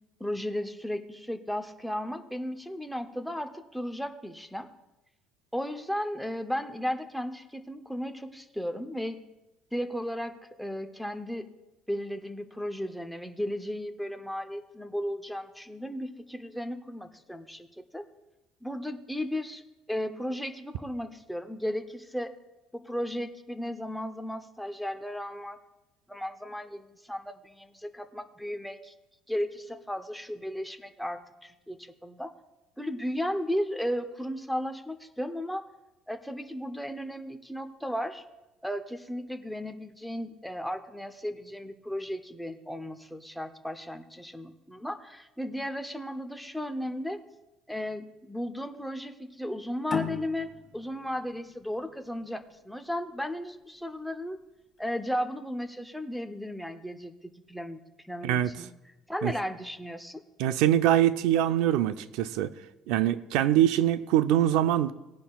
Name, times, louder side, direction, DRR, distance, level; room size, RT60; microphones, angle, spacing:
voice 1, 0.2-4.7 5.5-9.2 9.7-10.3 10.6-11.5 11.9-17.7 17.9-18.1 18.6-19.6 19.9-22.3 22.7-25.6 26.1-28.9 29.3-32.3 32.8-35.6 36.1-38.2 38.6-47.2 47.7-54.4 54.8-57.1 57.5-58.7 59.1-60.2, equal, ahead, 6 dB, 0.7 m, -35 dB
sound 1, 49.9-53.1, left 6 dB, 25° left, 1.3 m, -37 dB
voice 2, 60.4-62.5 62.9-64.9, right 12 dB, 80° right, 12 dB, 0.5 m, -23 dB
19.0 x 10.0 x 2.3 m, 1.0 s
cardioid pair, 155°, 0 cm